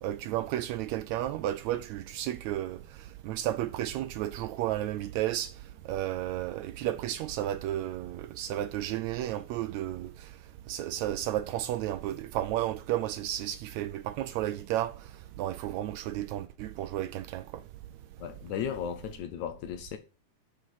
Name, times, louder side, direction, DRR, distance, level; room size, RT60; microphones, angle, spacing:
voice 1, 0.0-2.8 3.2-5.5 5.8-10.3 10.7-14.9 15.4-17.6, right 13 dB, 80° right, 1.6 m, -32 dB
voice 2, 18.2-20.0, left 8 dB, 75° left, 2.1 m, -35 dB
8.3 x 5.0 x 6.3 m
omnidirectional pair, 3.6 m